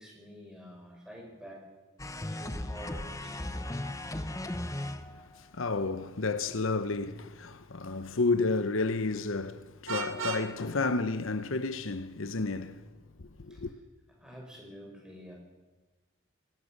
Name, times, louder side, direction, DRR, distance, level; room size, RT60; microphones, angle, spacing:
voice 1, 0.0-1.7 2.3-3.5 13.5-13.7 14.2-15.3, equal, 5° right, 6.2 m, -48 dB
sound 1, 2.0-5.4, left 1 dB, 15° left, 0.8 m, -36 dB
voice 2, 5.0-12.9 13.2-13.7, left 3 dB, 75° left, 0.9 m, -31 dB
Vehicle horn car horn honking, 9.9-10.5, right 5 dB, 80° right, 2.0 m, -35 dB
21.5 x 19.5 x 6.6 m
head